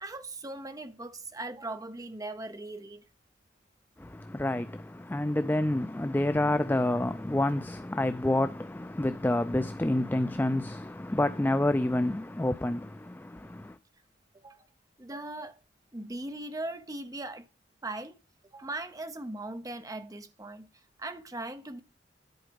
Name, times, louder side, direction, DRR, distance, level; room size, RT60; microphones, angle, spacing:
voice 1, 0.0-3.0 14.3-14.6 15.0-15.6 15.9-17.4 17.8-18.2 18.5-20.7 21.0-21.8, right 2 dB, 20° right, 0.8 m, -39 dB
voice 2, 4.0-13.8, left 1 dB, 10° left, 0.4 m, -28 dB
10.5 x 4.9 x 5.2 m
head